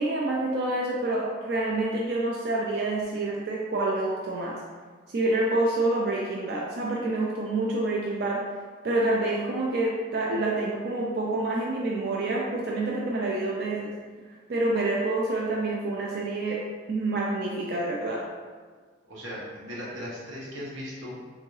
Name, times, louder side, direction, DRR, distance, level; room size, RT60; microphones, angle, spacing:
voice 1, 0.0-4.6 5.1-8.4 8.8-13.9 14.5-16.6 16.9-18.2, right 2 dB, 55° right, -3 dB, 0.4 m, -27 dB
voice 2, 19.1-21.2, equal, 85° right, -6 dB, 1.0 m, -37 dB
3.6 x 2.7 x 3.1 m, 1.5 s
head